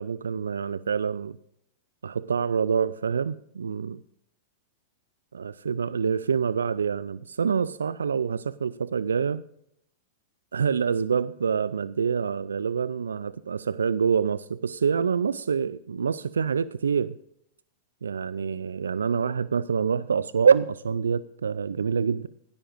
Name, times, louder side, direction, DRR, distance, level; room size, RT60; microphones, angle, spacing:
voice 1, 0.0-1.4 2.0-4.0 5.3-9.4 10.5-17.2 18.0-22.3, right 6 dB, 80° right, 0.3 m, -26 dB
16.5 x 12.5 x 2.5 m
hypercardioid pair, 100°, 0 cm